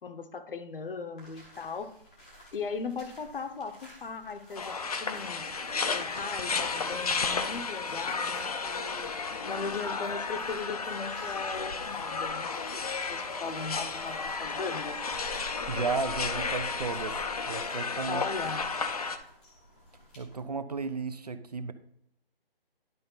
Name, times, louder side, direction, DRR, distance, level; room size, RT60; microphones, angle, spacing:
voice 1, 0.0-1.9 2.3-5.5 5.8-9.1 9.4-15.0 18.1-18.6, left 4 dB, 65° left, 9 dB, 1.0 m, -38 dB
sound 1, 1.2-20.4, equal, 10° left, 0.7 m, -51 dB
sound 2, 4.6-19.2, left 4 dB, 40° left, 0.6 m, -33 dB
voice 2, 15.7-17.2 17.5-18.2 20.2-21.7, right 4 dB, 45° right, 11 dB, 0.5 m, -33 dB
10.5 x 5.2 x 3.9 m, 0.75 s
hypercardioid pair, 175°, 30 cm